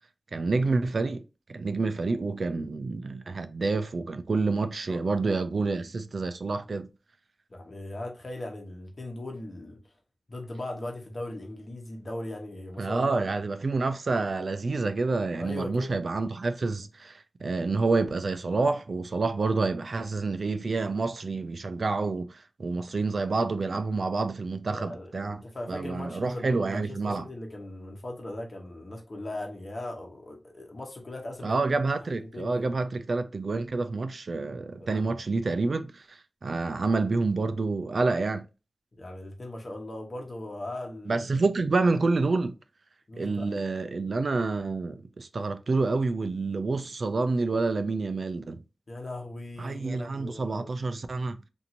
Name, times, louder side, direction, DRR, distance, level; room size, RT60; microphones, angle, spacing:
voice 1, 0.3-1.2 1.5-6.9 12.8-25.4 25.7-27.3 31.4-38.4 41.1-42.6 43.2-48.6 49.6-51.4, right 3 dB, 60° right, 0.4 m, -28 dB
voice 2, 7.5-9.8 10.3-13.3 15.4-15.9 24.7-31.6 32.1-32.7 34.8-35.2 39.0-41.2 43.1-43.5 48.9-50.7, left 1 dB, 45° left, 1.0 m, -39 dB
2.8 x 2.6 x 2.5 m
wide cardioid pair, 80°, 0 cm